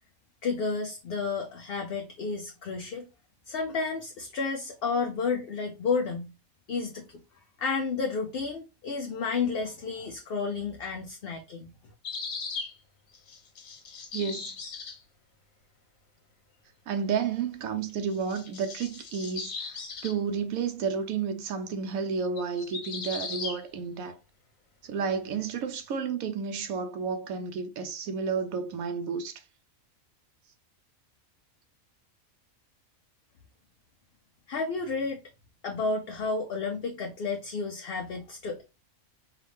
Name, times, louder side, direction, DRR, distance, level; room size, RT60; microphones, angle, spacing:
voice 1, 0.4-3.1 3.5-6.3 6.7-7.0 7.6-11.7 34.5-35.2 35.6-38.6, left 4 dB, 55° left, 0.7 m, -31 dB
sound 1, 12.0-12.7 13.1-15.0 17.9-20.1 22.4-23.6 25.5-25.8, left 4 dB, 80° left, 1.4 m, -38 dB
voice 2, 14.1-14.5 16.9-24.2 24.8-29.4, right 6 dB, 85° right, 1.1 m, -31 dB
4.8 x 2.4 x 3.4 m
omnidirectional pair, 1.4 m